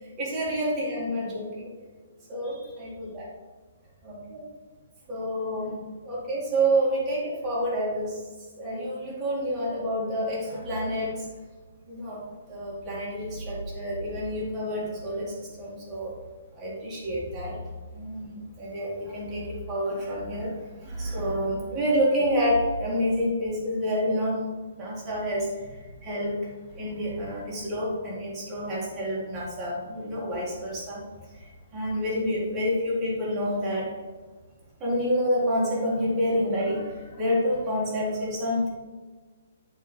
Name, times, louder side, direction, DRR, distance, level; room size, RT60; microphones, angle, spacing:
voice 1, 0.2-1.7 2.3-3.3 4.0-4.4 5.1-8.2 8.6-11.3 11.9-12.2 12.5-16.1 16.5-17.6 17.9-24.4 24.8-26.4 26.7-31.0 31.3-33.9 34.8-38.7, equal, 10° right, -7 dB, 2.2 m, -28 dB
10.5 x 4.4 x 5.4 m, 1.3 s
hypercardioid pair, 180°, 0 cm